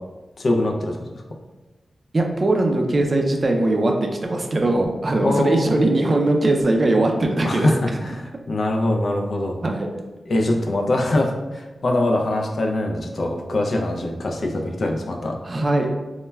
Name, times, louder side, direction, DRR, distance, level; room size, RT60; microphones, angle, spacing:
voice 1, 0.4-0.9 5.2-5.8 7.4-8.1 8.5-9.6 10.3-15.4, left 1 dB, 65° left, 2 dB, 0.4 m, -23 dB
voice 2, 2.1-8.0 9.6-9.9 15.4-15.9, right 2 dB, 45° right, 2 dB, 0.4 m, -20 dB
2.1 x 2.1 x 3.3 m, 1.1 s
wide cardioid pair, 75°, 0 cm